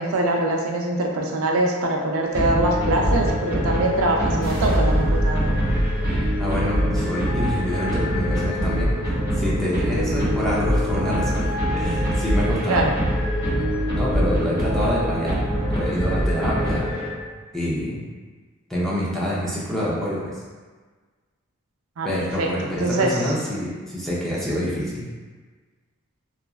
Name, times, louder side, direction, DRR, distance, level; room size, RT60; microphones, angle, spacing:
voice 1, 0.0-5.6 12.7-12.9 22.0-22.1 22.4-23.3, right 1 dB, 85° right, 0 dB, 0.4 m, -23 dB
sound 1, 2.3-17.4, equal, 15° right, 1.1 m, -24 dB
sound 2, 4.4-10.6 11.0-11.6, equal, 40° left, 1.2 m, -29 dB
voice 2, 6.1-8.9 9.3-11.4 11.7-12.9 13.9-15.4 15.7-17.0 17.5-18.0 18.7-20.3 22.0-25.1, equal, ahead, -8 dB, 0.5 m, -26 dB
3.0 x 2.4 x 2.3 m, 1.4 s
head